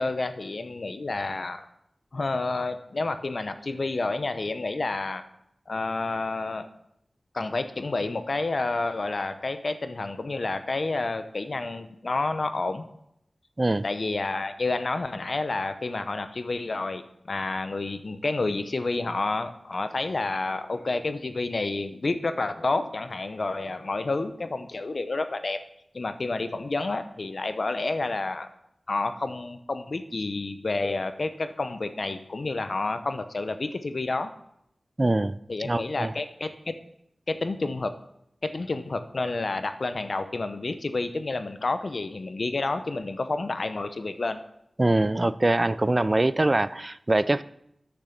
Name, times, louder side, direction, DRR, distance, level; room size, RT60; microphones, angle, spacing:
voice 1, 0.0-1.6 2.1-5.2 5.7-6.7 7.3-12.9 13.8-25.6 25.9-28.5 28.9-34.3 35.5-36.8 37.3-37.9 38.4-44.4, left 3 dB, 65° left, 10 dB, 0.8 m, -29 dB
voice 2, 35.0-36.1 44.8-47.4, right 2 dB, 35° right, 16 dB, 0.4 m, -23 dB
9.8 x 6.8 x 5.9 m, 0.76 s
cardioid pair, 40°, 0 cm